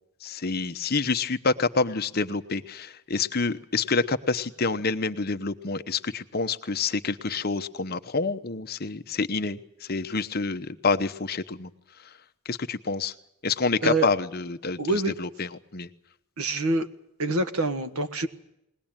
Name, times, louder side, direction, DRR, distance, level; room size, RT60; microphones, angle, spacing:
voice 1, 0.2-11.7 12.0-12.1 12.4-13.1 13.4-15.9, left 4 dB, 45° left, 10 dB, 0.9 m, -27 dB
voice 2, 14.8-15.1 16.4-16.9 17.2-18.3, right 2 dB, 75° right, 9 dB, 1.6 m, -25 dB
21.0 x 19.0 x 8.9 m, 0.81 s
head